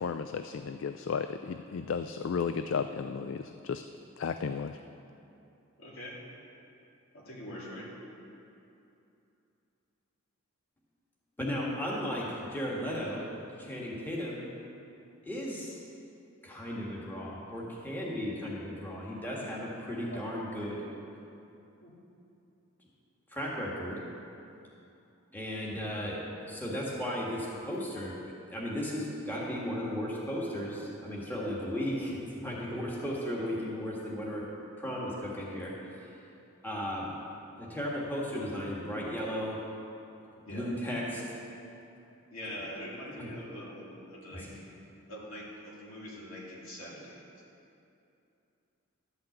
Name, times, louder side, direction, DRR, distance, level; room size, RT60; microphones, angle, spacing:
voice 1, 0.0-3.4 3.6-3.8 4.2-4.8, left 6 dB, 60° left, 9 dB, 0.3 m, -33 dB
voice 2, 5.8-6.2 7.1-7.9 19.3-21.0 21.8-21.9 33.7-33.8 40.4-40.7 41.2-41.3 42.3-44.7 45.1-47.2, equal, 80° left, -5 dB, 2.9 m, -44 dB
voice 3, 11.4-13.3 13.6-14.5 15.2-15.8 16.4-20.8 23.3-24.0 25.3-28.1 28.5-34.4 34.8-36.1 36.6-37.1 37.6-39.6 40.5-41.4 42.4-42.6 43.1-43.3 44.3-44.5, equal, 10° left, -5 dB, 1.6 m, -35 dB
12.0 x 5.8 x 7.8 m, 2.7 s
head